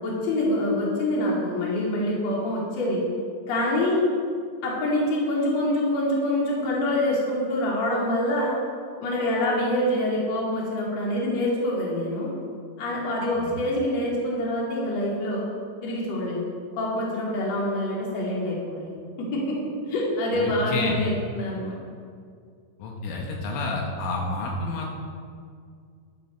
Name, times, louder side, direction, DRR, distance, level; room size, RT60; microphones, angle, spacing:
voice 1, 0.0-3.0 3.5-4.0 4.6-8.5 9.0-12.3 12.8-15.4 15.8-16.4 16.8-18.9 19.3-19.5 19.9-21.8, left 1 dB, 40° left, -4 dB, 3.1 m, -25 dB
voice 2, 20.3-21.0 22.8-24.9, left 3 dB, 75° left, 0 dB, 3.7 m, -30 dB
13.0 x 11.5 x 4.5 m, 2.2 s
omnidirectional pair, 5.9 m